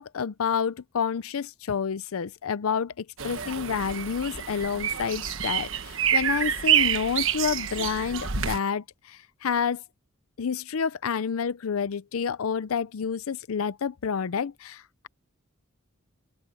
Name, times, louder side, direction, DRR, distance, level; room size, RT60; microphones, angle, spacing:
voice 1, 0.0-9.8 10.4-15.1, left 6 dB, 85° left, 0.5 m, -29 dB
sound 1, 3.2-8.6, right 9 dB, 65° right, 1.3 m, -27 dB
open air
head